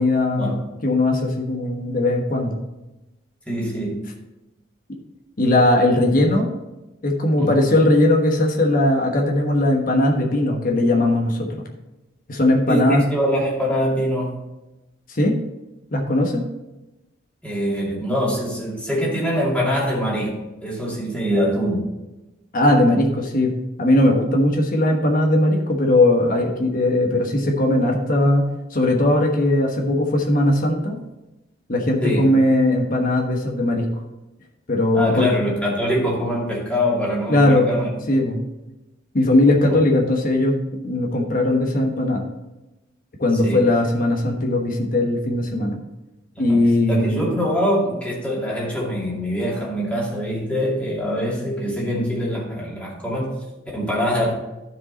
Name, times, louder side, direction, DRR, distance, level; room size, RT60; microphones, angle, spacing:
voice 1, 0.0-2.6 5.4-6.5 7.0-11.5 12.3-13.0 15.1-15.3 15.9-16.4 22.5-23.5 23.8-28.5 28.7-31.0 31.7-33.8 34.7-35.3 37.3-37.8 38.1-38.4 39.1-40.5 40.8-42.2 43.2-45.8 46.4-47.3, left 1 dB, 45° left, 1 dB, 1.2 m, -19 dB
voice 2, 3.5-4.0 7.4-7.6 12.7-14.4 17.4-20.4 20.6-21.9 32.0-32.3 34.9-37.9 39.7-39.8 43.4-43.6 46.4-46.6 46.9-53.3 53.7-54.3, equal, 5° left, -5 dB, 2.5 m, -23 dB
13.5 x 5.0 x 4.0 m, 1.0 s
head